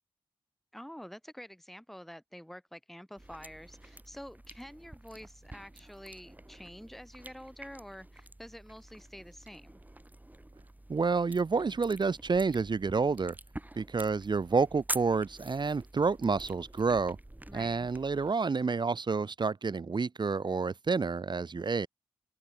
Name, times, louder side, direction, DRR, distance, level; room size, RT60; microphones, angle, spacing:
voice 1, 0.7-9.8 17.5-17.9, equal, ahead, 2.1 m, -48 dB
sound 1, 3.2-18.3, right 1 dB, 15° right, 5.3 m, -47 dB
voice 2, 10.9-13.4 13.7-17.2 17.5-21.9, right 4 dB, 55° right, 1.7 m, -29 dB
cardioid pair, 50°, 9 cm